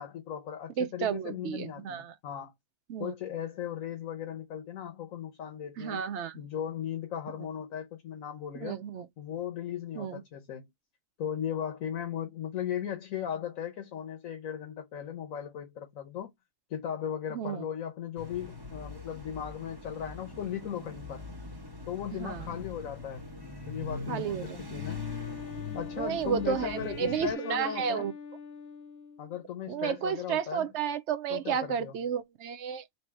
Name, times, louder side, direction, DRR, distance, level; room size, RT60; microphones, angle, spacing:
voice 1, 0.0-2.5 3.0-6.0 6.3-8.8 9.2-10.7 11.2-16.3 16.7-21.3 21.9-23.2 23.7-25.0 25.7-28.1 29.2-30.7 31.3-32.0, left 9 dB, 85° left, 1.3 m, -37 dB
voice 2, 0.8-2.1 2.9-3.1 5.8-6.4 8.6-9.1 9.9-10.2 17.3-17.6 22.1-22.5 24.1-24.6 26.0-28.1 29.7-32.8, right 8 dB, 65° right, 0.8 m, -32 dB
sound 1, 18.2-27.3, left 3 dB, 20° right, 1.1 m, -42 dB
Wind instrument woodwind instrument, 24.7-29.4, left 5 dB, 55° left, 0.8 m, -43 dB
3.4 x 2.8 x 4.5 m
omnidirectional pair, 1.4 m